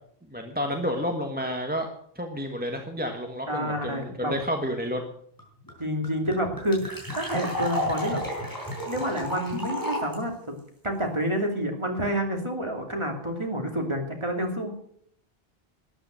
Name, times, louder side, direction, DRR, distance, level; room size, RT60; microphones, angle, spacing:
voice 1, 0.3-1.9 2.1-5.0, equal, 10° right, 3 dB, 1.4 m, -30 dB
voice 2, 3.5-4.3 5.8-8.2 8.9-10.5 10.8-14.7, equal, 25° right, 2 dB, 2.8 m, -29 dB
sound 1, 5.4-5.5 5.7-5.8 6.0-10.1, left 1 dB, 20° left, 5.1 m, -31 dB
13.5 x 10.0 x 7.8 m, 0.64 s
omnidirectional pair, 1.1 m